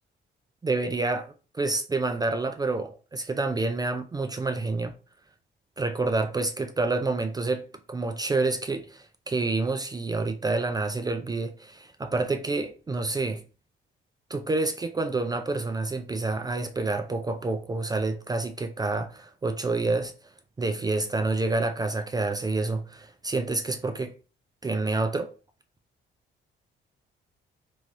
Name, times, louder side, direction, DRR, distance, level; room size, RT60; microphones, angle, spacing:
voice 1, 0.6-4.9 5.8-13.4 14.3-20.1 20.6-24.1 24.6-25.3, right 3 dB, 20° right, 0.3 m, -28 dB
3.2 x 2.7 x 2.5 m
cardioid pair, 90°, 20 cm